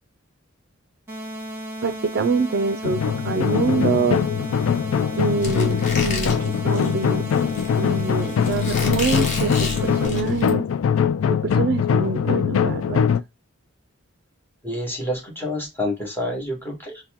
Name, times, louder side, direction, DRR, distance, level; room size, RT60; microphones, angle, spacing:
sound 1, 1.1-10.1, right 1 dB, 10° right, 1.8 m, -34 dB
voice 1, 1.8-4.2 5.2-7.3 7.8-10.7 11.3-13.0, right 4 dB, 50° right, 0.5 m, -25 dB
sound 2, 2.8-13.2, left 7 dB, 70° left, 0.3 m, -22 dB
Squeak, 5.4-10.5, left 2 dB, 35° left, 1.3 m, -31 dB
voice 2, 14.6-17.0, left 1 dB, 10° left, 1.5 m, -28 dB
4.3 x 2.2 x 3.5 m
head